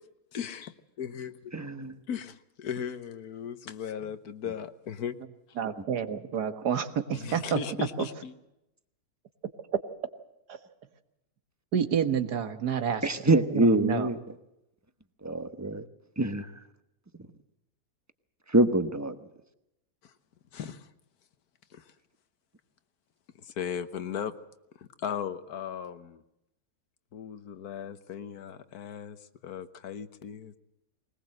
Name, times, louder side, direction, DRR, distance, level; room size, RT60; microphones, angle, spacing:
voice 1, 0.3-1.5 2.1-2.3 2.6-5.1 7.1-8.3 20.0-20.1 20.5-20.9 21.7-21.9 23.4-24.3 24.8-26.2 27.1-30.6, left 8 dB, 75° left, 12 dB, 1.5 m, -37 dB
voice 2, 1.5-1.9 13.0-14.2 15.2-15.8 16.2-16.5 18.5-19.2, right 2 dB, 15° right, 10 dB, 0.9 m, -25 dB
voice 3, 5.6-8.1 10.5-10.6 11.7-13.0 13.5-14.1, right 8 dB, 90° right, 9 dB, 1.9 m, -29 dB
20.5 x 20.0 x 7.7 m, 0.86 s
omnidirectional pair, 1.7 m